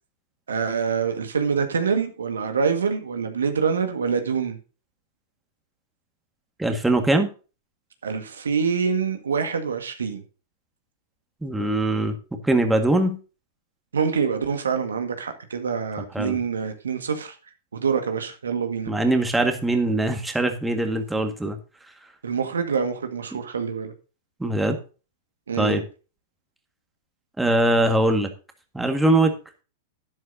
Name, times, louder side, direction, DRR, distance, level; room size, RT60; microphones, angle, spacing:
voice 1, 0.5-4.6 8.0-10.2 13.9-17.3 17.7-18.9 22.2-23.9 25.5-25.8, right 6 dB, 80° right, 1.7 m, -25 dB
voice 2, 6.6-7.3 11.4-12.1 12.4-13.2 16.1-16.4 18.9-21.6 24.4-24.8 25.6-25.8 27.4-28.3 28.7-29.3, right 1 dB, 5° right, 1.7 m, -21 dB
12.0 x 10.5 x 2.7 m
figure-of-eight pair, 100°, 0 cm